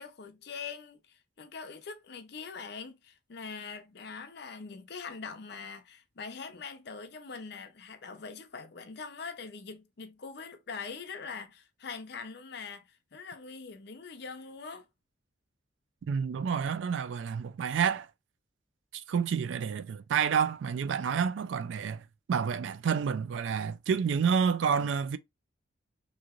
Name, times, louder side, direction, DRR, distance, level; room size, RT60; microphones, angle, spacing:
voice 1, 0.0-14.9, left 5 dB, 60° left, 0.6 m, -43 dB
voice 2, 16.1-18.1 18.9-25.2, right 6 dB, 80° right, 0.3 m, -29 dB
3.0 x 2.7 x 2.4 m
head